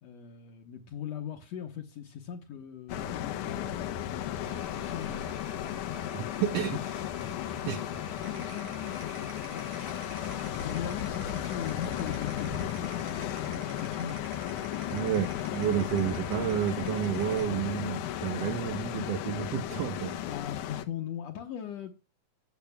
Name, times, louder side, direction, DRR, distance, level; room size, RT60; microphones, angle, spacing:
voice 1, 0.0-3.8 4.3-5.2 6.4-7.6 7.8-10.3 10.6-15.0 20.3-21.9, left 9 dB, 70° left, 1.9 m, -40 dB
sound 1, 2.9-20.9, left 11 dB, 90° left, 2.4 m, -35 dB
sound 2, 4.4-10.5, left 1 dB, ahead, 0.7 m, -50 dB
voice 2, 6.1-6.8 7.7-8.1 14.9-20.2, right 11 dB, 70° right, 1.6 m, -31 dB
sound 3, 8.2-17.6, right 5 dB, 90° right, 3.9 m, -50 dB
15.5 x 7.2 x 2.2 m
omnidirectional pair, 3.5 m